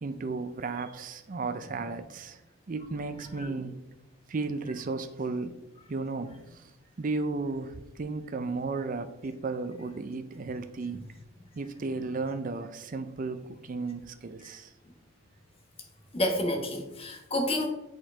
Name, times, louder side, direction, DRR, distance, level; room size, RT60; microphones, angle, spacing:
voice 1, 0.0-2.4 2.7-3.8 4.3-5.6 5.9-6.7 7.0-11.0 11.6-14.7, right 3 dB, 40° right, 9 dB, 0.4 m, -34 dB
voice 2, 16.1-17.7, left 1 dB, 25° left, 3 dB, 1.1 m, -29 dB
7.9 x 4.6 x 4.3 m, 0.93 s
head